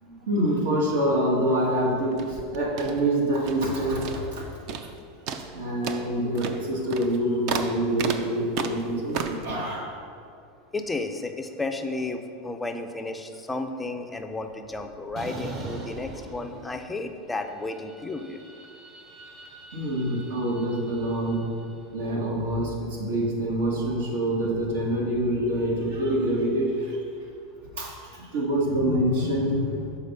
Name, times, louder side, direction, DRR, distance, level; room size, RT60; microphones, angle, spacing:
voice 1, 0.0-4.5 5.5-9.9 19.7-21.4 21.9-27.0 27.7-29.8, right 1 dB, 80° right, -2 dB, 1.6 m, -26 dB
sound 1, 2.1-3.7 4.0-4.4 4.7-5.0 5.3-9.5, right 6 dB, 45° right, 0.4 m, -34 dB
voice 2, 10.7-18.4, left 2 dB, 10° left, 6 dB, 0.4 m, -33 dB
sound 2, 15.2-17.1 17.4-21.7, right 2 dB, 30° right, 0.9 m, -42 dB
6.5 x 4.3 x 5.4 m, 2.5 s
supercardioid pair, 155°, 0 cm